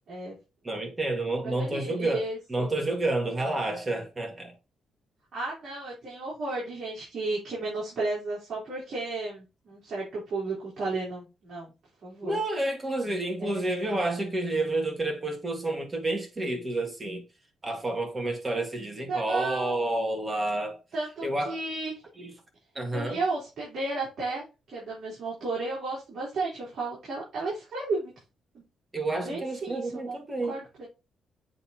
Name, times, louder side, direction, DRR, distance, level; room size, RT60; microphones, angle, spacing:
voice 1, 0.6-2.2 2.5-4.5 12.2-17.2 17.6-20.8 21.2-21.6 22.2-22.3 22.8-23.2 28.9-30.6, right 2 dB, 20° right, 1.9 m, -29 dB
voice 2, 1.4-2.7 5.3-11.7 12.0-12.4 13.4-13.7 19.1-19.8 20.9-22.0 22.9-24.4 24.7-28.1 29.2-30.2 30.5-30.9, right 3 dB, 55° right, 4.0 m, -33 dB
8.0 x 4.1 x 3.0 m
cardioid pair, 105°, 0 cm